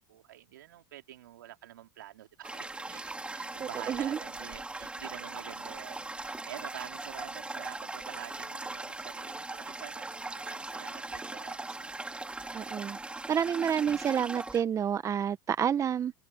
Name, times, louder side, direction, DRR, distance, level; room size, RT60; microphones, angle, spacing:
voice 1, 0.0-11.9, right 13 dB, 80° right, 3.0 m, -48 dB
Toilet flush, 2.4-14.6, right 2 dB, 10° right, 3.6 m, -40 dB
voice 2, 3.6-4.2 12.5-13.0 13.3-16.1, right 8 dB, 30° right, 1.2 m, -29 dB
open air
hypercardioid pair, 90°, 10 cm